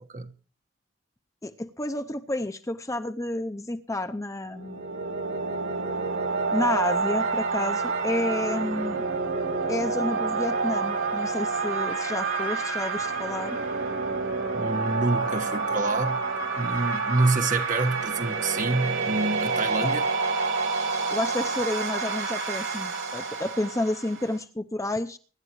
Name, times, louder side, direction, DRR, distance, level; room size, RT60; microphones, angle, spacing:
voice 1, 1.4-4.8 6.5-9.0 9.7-13.6 19.8-19.9 21.1-25.2, left 1 dB, 15° left, 0.6 m, -30 dB
sound 1, 4.5-24.4, right 4 dB, 80° right, 3.1 m, -28 dB
voice 2, 14.5-16.2 16.5-20.1, right 2 dB, 40° right, 1.4 m, -27 dB
24.0 x 11.0 x 3.1 m
head